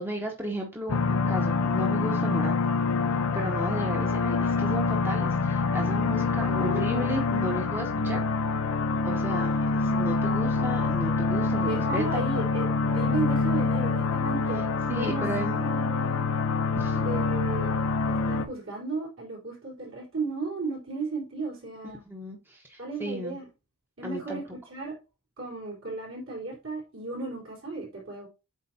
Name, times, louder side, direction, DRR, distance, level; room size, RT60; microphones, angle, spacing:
voice 1, 0.0-2.5 3.3-8.2 9.0-12.2 14.9-15.6 16.8-17.0 22.1-23.4 24.0-24.4, right 1 dB, 10° right, 0.9 m, -34 dB
sound 1, 0.9-18.5, left 4 dB, 70° left, 0.7 m, -26 dB
voice 2, 6.2-7.1 11.6-15.2 15.6-16.3 16.9-17.7 18.1-22.0 22.8-23.5 24.0-24.9 25.4-28.3, right 3 dB, 65° right, 3.7 m, -35 dB
8.2 x 4.5 x 2.8 m
head